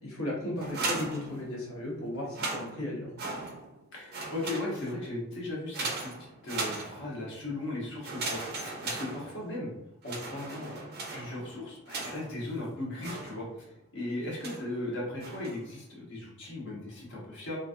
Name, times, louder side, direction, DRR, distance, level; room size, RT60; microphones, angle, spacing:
voice 1, 0.0-3.1, left 1 dB, 75° left, -5 dB, 1.3 m, -35 dB
sound 1, 0.6-1.8 2.2-3.8 4.1-5.1 5.7-7.3 8.0-9.7 10.0-12.4 13.0-13.7 14.4-14.8 15.2-15.7, right 3 dB, 50° right, 0.6 m, -38 dB
voice 2, 3.9-6.1 6.4-9.7 10.0-13.7 13.9-17.6, left 2 dB, 60° left, -4 dB, 1.0 m, -37 dB
3.1 x 2.4 x 2.5 m, 0.81 s
head